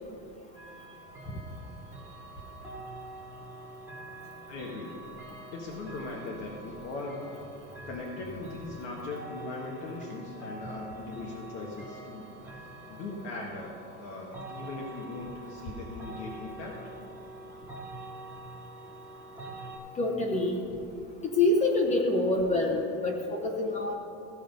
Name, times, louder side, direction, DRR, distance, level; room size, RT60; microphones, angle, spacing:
sound 1, 0.5-19.8, right 2 dB, 5° right, 1.3 m, -46 dB
voice 1, 4.5-4.9 5.5-7.2 7.9-13.7 14.0-16.8, left 3 dB, 75° left, -2 dB, 1.6 m, -39 dB
voice 2, 20.0-20.6 21.3-24.0, left 2 dB, 20° left, 2 dB, 0.8 m, -26 dB
15.5 x 5.5 x 5.3 m, 2.6 s
cardioid pair, 160°, 34 cm